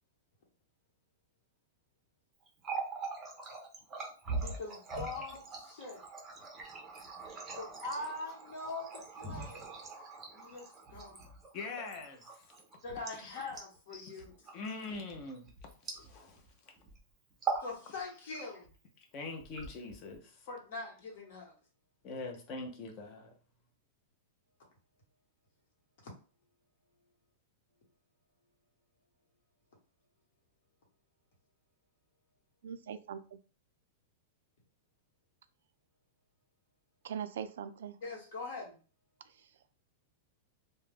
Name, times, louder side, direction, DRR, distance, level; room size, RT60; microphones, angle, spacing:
Water tap faucet, 2.5-16.5 16.8-17.0 17.3-17.7 18.1-18.7 19.4-20.2, right 4 dB, 15° right, 0.5 m, -42 dB
voice 1, 4.4-6.1 7.6-9.7 10.3-11.2 12.8-14.3 17.6-18.7 20.5-21.5 26.0-26.1 38.0-38.8, left 3 dB, 60° left, 0 dB, 1.1 m, -42 dB
voice 2, 11.5-12.5 13.2-13.3 13.9-14.2 14.5-16.7 19.1-20.5 22.0-23.3, left 3 dB, 30° left, 3 dB, 0.6 m, -44 dB
voice 3, 32.6-33.4 37.0-38.0, right 8 dB, 80° right, 11 dB, 0.3 m, -41 dB
2.3 x 2.1 x 3.3 m, 0.37 s
supercardioid pair, 170°, 0 cm